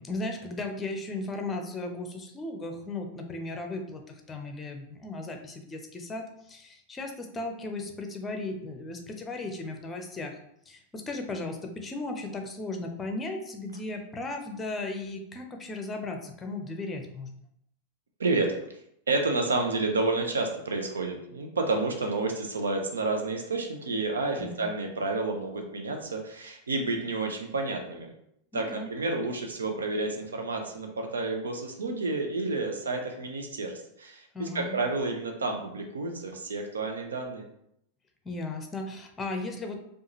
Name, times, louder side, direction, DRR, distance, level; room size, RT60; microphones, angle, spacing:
voice 1, 0.0-10.3 10.7-17.3 24.4-24.7 28.5-28.9 34.3-34.8 38.2-39.8, left 2 dB, 15° left, 4 dB, 0.6 m, -36 dB
voice 2, 18.2-18.8 19.1-28.1 28.5-37.5, right 3 dB, 70° right, 3 dB, 0.7 m, -30 dB
4.7 x 2.5 x 3.0 m, 0.74 s
figure-of-eight pair, 90°, 0 cm